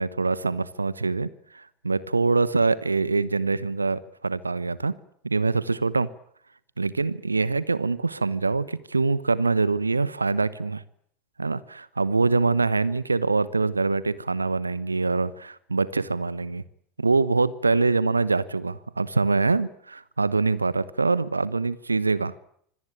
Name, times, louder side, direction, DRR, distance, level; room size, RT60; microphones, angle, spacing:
voice 1, 0.0-4.9 5.2-6.1 6.8-10.8 11.4-16.6 17.0-22.3, right 3 dB, 85° right, 18 dB, 1.0 m, -24 dB
25.5 x 17.5 x 8.9 m, 0.66 s
figure-of-eight pair, 80°, 0 cm